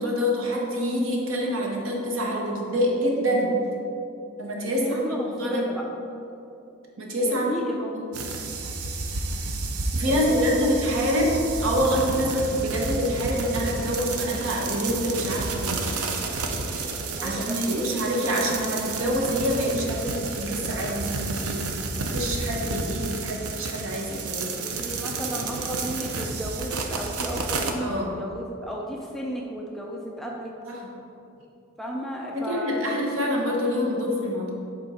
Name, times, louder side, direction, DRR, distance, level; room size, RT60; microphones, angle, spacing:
voice 1, 0.0-3.5 4.4-5.7 7.0-7.6 7.9-8.1 9.9-11.3 11.6-15.8 17.2-24.5 27.8-28.1 30.7-30.9 32.3-34.5, equal, 65° right, -1 dB, 1.1 m, -26 dB
voice 2, 4.7-5.8 7.2-7.9 8.2-8.4 10.1-10.8 17.2-17.9 24.6-30.5 31.8-33.0, equal, ahead, -2 dB, 0.4 m, -33 dB
sound 1, 8.1-27.7, right 3 dB, 85° right, 0.6 m, -31 dB
8.1 x 3.7 x 4.3 m, 2.8 s
head